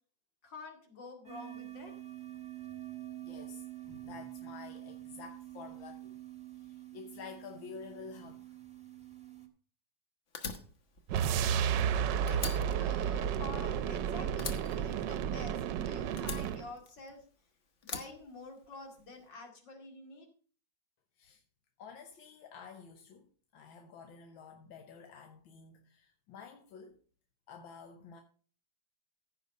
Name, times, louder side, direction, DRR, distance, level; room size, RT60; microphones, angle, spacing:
voice 1, 0.4-1.9 12.2-17.2 17.8-20.3, left 3 dB, 65° left, 3.1 m, -49 dB
sound 1, 1.2-9.5, right 14 dB, 5° right, 1.2 m, -47 dB
voice 2, 3.2-6.2 6.6-8.6 21.2-21.4 21.8-27.0 27.5-28.2, left 5 dB, 85° left, 1.8 m, -50 dB
Fire, 10.3-12.0 12.3-14.0 14.4-15.7 16.2-17.3 17.8-19.0, left 4 dB, 40° left, 1.4 m, -42 dB
sound 2, 11.1-16.7, right 8 dB, 75° right, 1.3 m, -32 dB
15.0 x 5.5 x 5.3 m
omnidirectional pair, 2.1 m